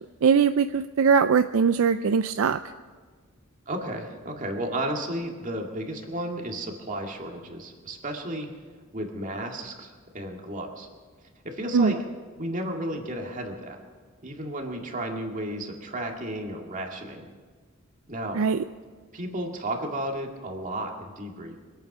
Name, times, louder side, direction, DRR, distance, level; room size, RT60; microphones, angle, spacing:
voice 1, 0.2-2.6 11.7-11.9 18.3-18.6, right 6 dB, 65° right, 11 dB, 0.4 m, -21 dB
voice 2, 3.7-8.5 8.9-10.9 11.4-12.0 12.4-13.8 14.2-17.2 18.1-18.4 19.1-21.6, right 1 dB, 40° right, 2 dB, 2.0 m, -33 dB
24.5 x 9.0 x 6.0 m, 1.5 s
head